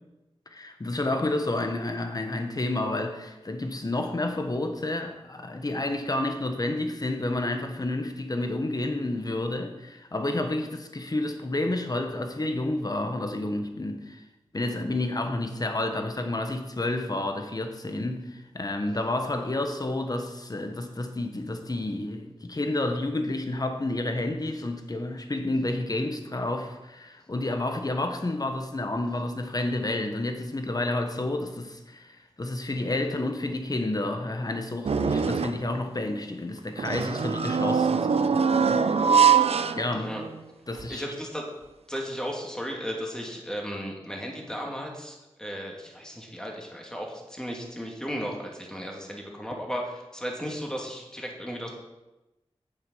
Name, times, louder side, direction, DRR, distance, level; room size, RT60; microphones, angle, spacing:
voice 1, 0.5-14.2 14.5-39.2 39.7-40.1 40.7-41.0, left 2 dB, 35° left, 1.2 m, -30 dB
sound 1, 34.8-35.7 36.8-40.4 40.8-40.9 42.0-42.1, right 6 dB, 75° right, 0.5 m, -23 dB
voice 2, 40.9-41.4 41.9-51.7, equal, 5° left, 2.3 m, -35 dB
9.2 x 7.2 x 5.6 m
wide cardioid pair, 70°, 11 cm